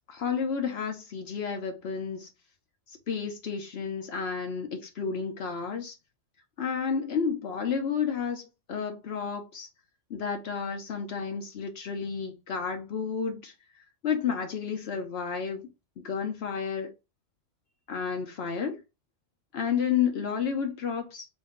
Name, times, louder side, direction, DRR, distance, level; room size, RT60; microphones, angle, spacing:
voice 1, 0.1-2.3 3.1-5.9 6.6-8.4 8.7-9.7 10.1-13.5 14.0-15.7 16.0-16.9 17.9-18.8 19.5-21.2, left 6 dB, 70° left, 1.0 m, -31 dB
3.6 x 2.7 x 3.8 m
omnidirectional pair, 1.1 m